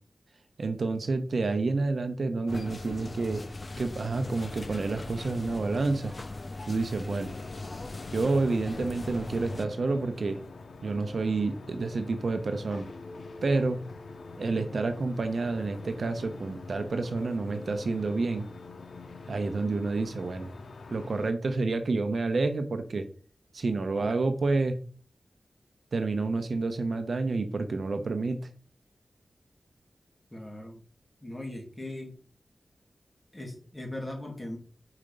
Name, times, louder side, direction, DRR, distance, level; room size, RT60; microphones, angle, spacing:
voice 1, 0.6-3.4 3.8-6.1 6.7-7.3 8.1-10.4 10.8-12.9 13.4-13.8 14.4-18.4 19.3-20.5 20.9-23.1 23.5-24.8 25.9-28.4, right 3 dB, 65° right, 8 dB, 0.7 m, -29 dB
sound 1, 2.5-9.6, left 2 dB, 40° left, 0.4 m, -40 dB
sound 2, 7.1-21.3, left 3 dB, 80° left, 0.7 m, -45 dB
voice 2, 30.3-30.8 31.2-32.2 33.3-34.6, left 1 dB, 15° left, 1 dB, 2.0 m, -39 dB
4.9 x 4.4 x 5.2 m, 0.42 s
wide cardioid pair, 110°, 0 cm